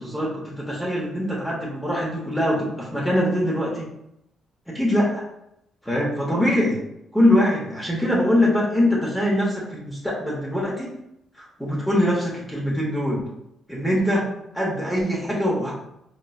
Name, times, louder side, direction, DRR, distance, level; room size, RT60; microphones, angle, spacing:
voice 1, 0.0-3.8 4.7-5.2 5.8-6.8 7.1-10.9 11.3-13.2 13.7-14.3 14.5-15.7, left 1 dB, 5° left, -4 dB, 0.8 m, -23 dB
4.1 x 2.3 x 2.3 m, 0.81 s
cardioid pair, 90°, 0 cm